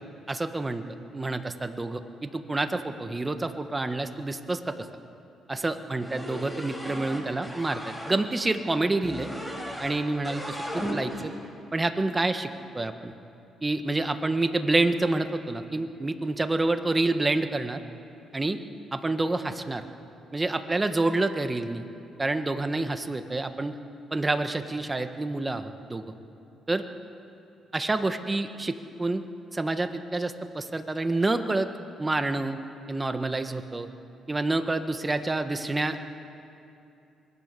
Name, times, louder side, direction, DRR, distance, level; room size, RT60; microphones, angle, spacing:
voice 1, 0.3-0.8 1.1-4.8 5.5-9.3 9.8-11.3 11.7-12.5 12.7-13.1 13.6-17.8 18.3-18.6 18.9-19.9 20.3-21.8 22.2-23.7 24.1-26.0 26.7-26.8 27.7-29.2 29.5-31.7 32.0-32.6 32.9-33.9 34.3-36.0, right 2 dB, 20° right, 8 dB, 1.5 m, -28 dB
sound 1, 6.0-8.2 9.0-10.0 10.2-11.3, equal, 5° left, 5.2 m, -36 dB
25.5 x 21.0 x 6.9 m, 2.7 s
cardioid pair, 90°, 0 cm